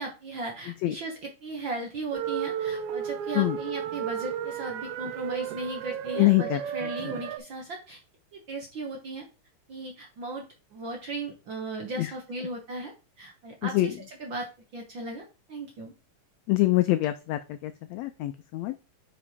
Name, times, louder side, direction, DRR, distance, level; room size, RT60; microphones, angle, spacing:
voice 1, 0.0-8.0 8.3-9.3 9.7-14.5 14.7-15.9, right 2 dB, 60° right, 1 dB, 1.3 m, -37 dB
sound 1, 2.1-7.4, right 9 dB, 85° right, 1.3 m, -33 dB
voice 2, 6.2-6.6 12.0-12.1 13.6-13.9 16.5-18.7, left 18 dB, 90° left, 10 dB, 1.5 m, -25 dB
5.6 x 5.1 x 4.9 m, 0.31 s
omnidirectional pair, 3.6 m